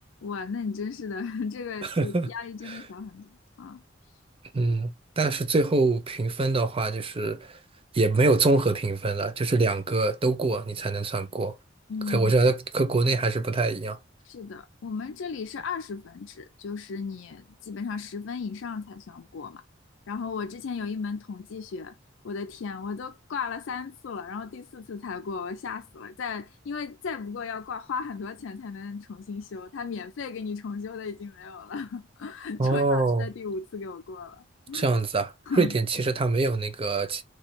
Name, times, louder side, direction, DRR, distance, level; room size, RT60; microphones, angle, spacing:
voice 1, 0.2-3.8 11.9-12.3 14.2-19.6 20.1-22.0 22.2-34.9 35.5-35.8, left 5 dB, 70° left, 0.4 m, -35 dB
voice 2, 1.8-2.3 2.7-2.8 4.5-7.6 7.9-11.5 12.1-14.0 32.6-33.3 34.7-37.2, right 3 dB, 30° right, 0.5 m, -24 dB
3.2 x 3.2 x 4.3 m
head